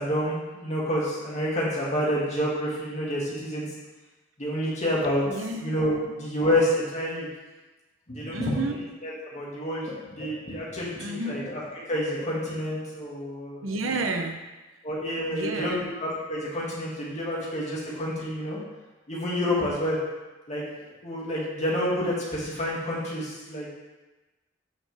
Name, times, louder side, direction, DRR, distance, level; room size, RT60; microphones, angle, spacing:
voice 1, 0.0-3.7 4.4-5.2 5.6-7.3 8.1-8.6 9.0-11.6 11.9-13.7 14.8-18.6 19.1-20.0 20.5-20.6 21.0-23.8, equal, 35° left, -6 dB, 2.3 m, -28 dB
voice 2, 5.3-6.1 8.3-8.7 10.0-10.1 11.0-11.5 13.6-14.4 15.3-15.9 19.6-19.8, right 2 dB, 80° right, 4 dB, 0.8 m, -31 dB
8.6 x 6.5 x 3.6 m, 1.2 s
head